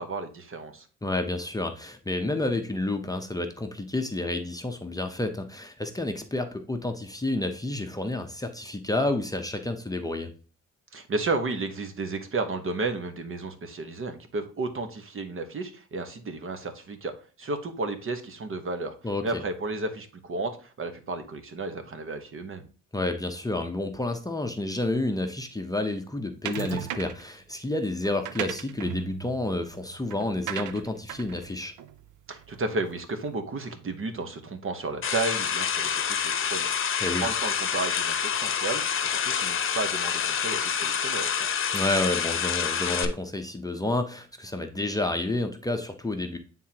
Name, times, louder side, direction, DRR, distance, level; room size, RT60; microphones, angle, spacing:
voice 1, 0.0-0.9 10.9-18.9 19.2-22.7 32.3-41.5, right 3 dB, 45° right, 8 dB, 1.2 m, -33 dB
voice 2, 1.0-10.3 19.0-19.2 22.9-31.7 37.0-37.3 41.7-46.4, left 2 dB, 10° left, 5 dB, 0.8 m, -30 dB
sound 1, 26.5-27.3 28.0-32.7, right 10 dB, 80° right, 0.6 m, -37 dB
sound 2, 35.0-43.1, left 7 dB, 45° left, 0.9 m, -27 dB
9.2 x 3.7 x 2.9 m, 0.37 s
cardioid pair, 90°, 30 cm